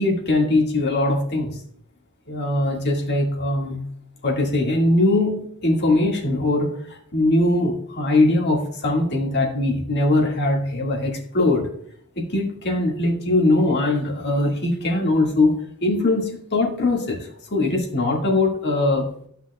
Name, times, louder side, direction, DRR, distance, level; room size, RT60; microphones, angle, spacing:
voice 1, 0.0-1.5 2.3-3.8 4.2-6.7 7.1-11.6 12.2-19.1, left 2 dB, 50° left, -2 dB, 1.9 m, -21 dB
12.5 x 5.8 x 2.3 m, 0.63 s
head